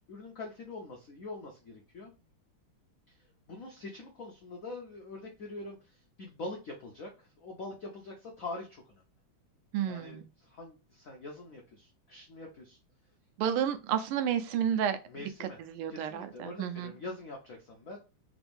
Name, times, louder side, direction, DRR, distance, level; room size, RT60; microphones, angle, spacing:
voice 1, 0.0-2.1 3.1-3.2 3.5-9.0 9.9-12.8 15.1-15.6 15.9-18.0, left 2 dB, 75° left, 1 dB, 0.7 m, -44 dB
voice 2, 9.7-10.2 13.4-16.9, right 9 dB, 80° right, 9 dB, 1.5 m, -31 dB
3.8 x 2.6 x 3.5 m, 0.30 s
omnidirectional pair, 2.4 m